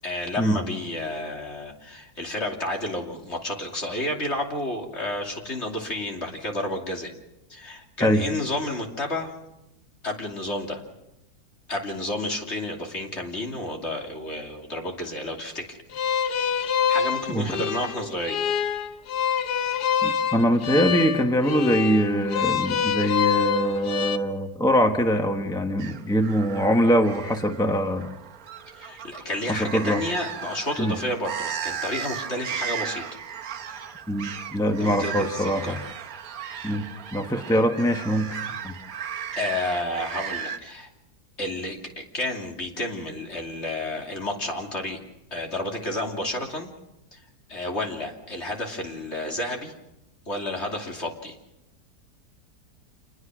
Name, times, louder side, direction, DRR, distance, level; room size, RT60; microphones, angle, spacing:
voice 1, 0.0-7.1 7.5-9.3 10.0-10.8 11.7-16.1 16.9-18.4 28.7-33.2 34.8-35.9 39.3-40.9 41.4-45.0 45.3-46.7 47.1-47.2 47.5-49.7 50.3-51.3, left 1 dB, 45° left, 1 dB, 3.1 m, -31 dB
sound 1, 15.9-24.2, left 8 dB, 80° left, 1.5 m, -26 dB
voice 2, 20.0-28.1 29.5-30.0 30.8-30.9 34.1-35.8 36.6-36.8 37.1-38.4 38.6-38.7, equal, 5° left, 5 dB, 1.2 m, -23 dB
sound 2, 25.8-40.6, right 8 dB, 65° right, 1.4 m, -36 dB
28.0 x 20.5 x 6.2 m, 0.91 s
omnidirectional pair, 1.7 m